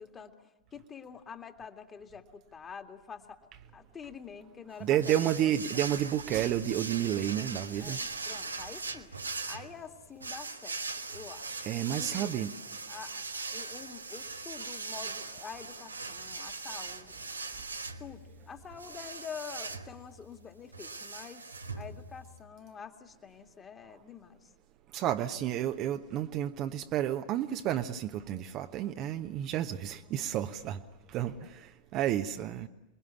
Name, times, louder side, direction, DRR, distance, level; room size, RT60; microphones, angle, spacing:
voice 1, 0.0-5.8 7.8-9.1 9.4-10.8 11.1-12.3 12.9-17.1 18.0-24.5 31.3-31.5, left 6 dB, 20° left, 5 dB, 2.2 m, -47 dB
voice 2, 4.8-8.0 11.6-12.5 24.9-30.8 31.1-31.6 31.9-32.7, right 11 dB, 35° right, 7 dB, 1.1 m, -31 dB
sound 1, 5.0-22.4, right 3 dB, 80° right, 1.4 m, -40 dB
28.0 x 22.0 x 9.9 m, 0.99 s
figure-of-eight pair, 90°, 0 cm